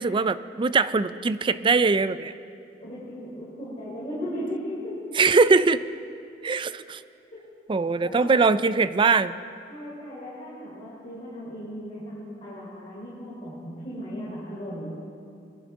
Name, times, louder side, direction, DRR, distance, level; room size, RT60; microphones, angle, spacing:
voice 1, 0.0-2.3 5.2-5.8 6.4-7.0 7.7-9.4, right 4 dB, 30° right, 14 dB, 0.4 m, -21 dB
voice 2, 2.8-5.0 6.5-6.6 8.0-8.4 9.7-14.9, equal, 35° left, -9 dB, 3.9 m, -36 dB
22.0 x 11.5 x 3.6 m, 2.5 s
head